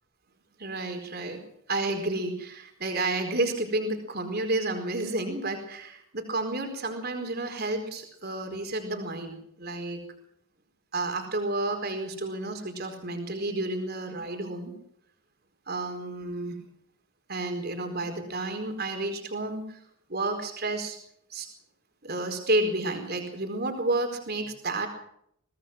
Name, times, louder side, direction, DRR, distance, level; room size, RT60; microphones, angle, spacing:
voice 1, 0.6-1.4 1.7-10.0 10.9-14.7 15.7-16.6 17.3-19.8 20.1-21.0 21.3-21.5 22.0-24.9, right 2 dB, 50° right, 5 dB, 4.5 m, -31 dB
24.0 x 18.0 x 6.1 m, 0.71 s
head